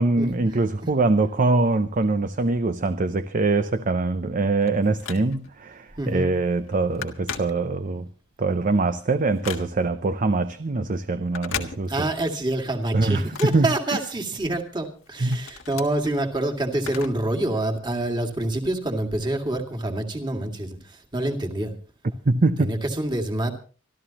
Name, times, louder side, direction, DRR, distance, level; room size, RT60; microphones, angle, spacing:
voice 1, 0.0-8.1 8.4-11.9 12.9-13.7 15.2-15.4 22.3-22.8, right 3 dB, 40° right, 0.6 m, -23 dB
Telephone, 4.2-5.6 6.1-6.3 6.6-8.1 8.5-10.0 11.2-12.3 12.6-14.4 14.8-17.4 17.7-17.8 18.6-18.7, left 7 dB, 75° left, 1.6 m, -38 dB
voice 2, 6.0-6.3 11.9-21.7 22.6-23.5, right 1 dB, 25° right, 2.1 m, -27 dB
25.5 x 13.0 x 2.9 m
head